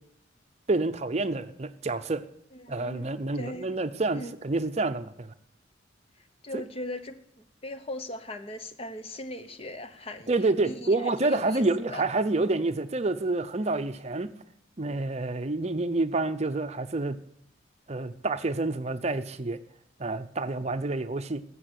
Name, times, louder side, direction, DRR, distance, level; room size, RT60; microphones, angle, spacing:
voice 1, 0.7-2.2 2.7-5.3 6.5-6.6 10.3-14.3 14.8-17.2 17.9-19.6 20.0-21.4, right 2 dB, 35° right, 10 dB, 0.7 m, -28 dB
voice 2, 2.5-3.1 3.3-3.7 4.1-4.3 6.2-10.3 10.6-11.6 11.9-12.0, left 1 dB, 30° left, 10 dB, 0.8 m, -39 dB
14.0 x 7.6 x 8.2 m, 0.73 s
head